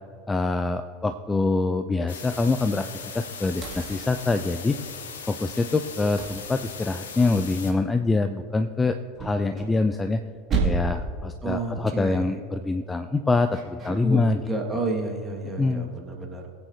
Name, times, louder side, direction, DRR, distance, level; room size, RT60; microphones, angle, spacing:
voice 1, 0.3-2.9 3.1-4.8 5.3-10.2 10.6-14.5 15.6-15.9, left 3 dB, 15° left, 8 dB, 0.4 m, -25 dB
sound 1, 2.1-7.7, left 6 dB, 65° left, 1.2 m, -39 dB
sound 2, 3.6-4.9 6.2-7.3 9.1-10.2 10.5-11.2 13.5-13.9, right 4 dB, 30° right, 2.2 m, -31 dB
voice 2, 11.4-12.3 13.9-16.5, right 2 dB, 15° right, 0 dB, 1.7 m, -30 dB
20.0 x 8.8 x 2.7 m, 2.3 s
figure-of-eight pair, 80°, 0 cm